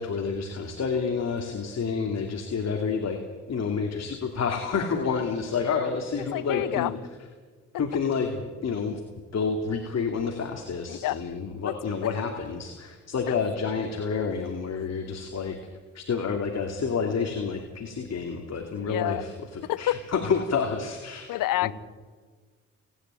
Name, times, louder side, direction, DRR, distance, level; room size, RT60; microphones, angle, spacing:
voice 1, 0.0-3.2 3.5-7.0 7.8-9.0 9.3-15.6 15.9-21.3 21.6-21.7, left 5 dB, 50° left, 3 dB, 2.6 m, -29 dB
voice 2, 6.3-6.9 10.9-11.2 11.6-11.7 13.3-13.4 18.8-19.2 19.7-20.0 21.3-21.7, left 14 dB, 70° left, 19 dB, 0.9 m, -28 dB
29.5 x 10.5 x 9.2 m, 1.5 s
supercardioid pair, 65°, 35 cm